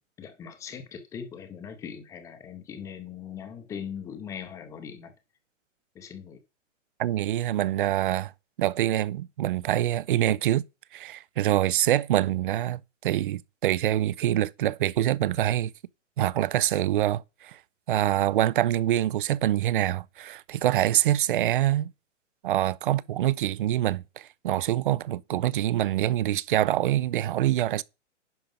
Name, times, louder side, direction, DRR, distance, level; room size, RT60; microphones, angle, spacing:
voice 1, 0.2-5.1 5.9-6.4, left 7 dB, 10° left, 0.6 m, -40 dB
voice 2, 7.0-8.3 8.6-10.6 10.9-15.7 16.2-17.6 17.9-21.9 22.4-27.8, right 13 dB, 45° right, 0.5 m, -25 dB
10.5 x 5.0 x 5.3 m
hypercardioid pair, 160°, 37 cm